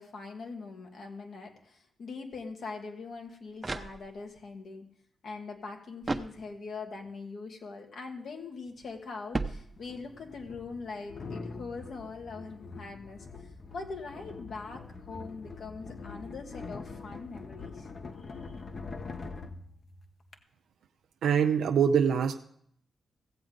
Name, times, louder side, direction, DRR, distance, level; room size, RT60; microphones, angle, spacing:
voice 1, 0.0-4.9 5.2-17.9 18.3-18.6, left 4 dB, 70° left, 3 dB, 1.6 m, -42 dB
sound 1, 3.1-4.5 6.0-6.9 9.3-10.2, right 3 dB, 30° right, 0.7 m, -36 dB
sound 2, 8.7-8.8 9.8-20.4, left 4 dB, 50° left, 1.0 m, -44 dB
voice 2, 21.2-22.4, right 7 dB, 85° right, 5 dB, 0.4 m, -24 dB
15.5 x 7.7 x 3.8 m, 0.68 s
cardioid pair, 55°, 0 cm